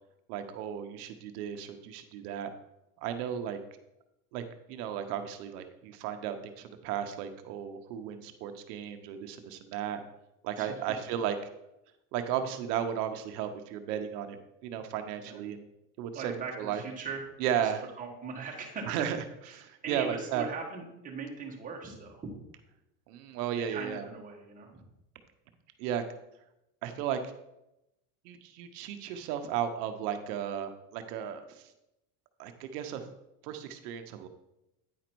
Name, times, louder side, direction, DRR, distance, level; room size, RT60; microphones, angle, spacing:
voice 1, 0.3-2.5 3.0-3.6 4.3-4.4 4.7-10.0 10.4-11.3 12.1-14.4 14.6-15.6 16.0-16.3 16.6-16.8 17.4-17.8 18.8-19.2 19.5-20.5 23.1-24.1 25.8-26.0 26.8-27.2 28.2-31.7 32.4-33.1 33.4-34.3, right 9 dB, 80° right, 7 dB, 0.9 m, -34 dB
voice 2, 16.1-17.7 18.0-18.9 19.4-22.3 23.7-24.8, right 4 dB, 15° right, -1 dB, 1.4 m, -40 dB
9.2 x 5.1 x 4.5 m, 0.90 s
cardioid pair, 150°, 46 cm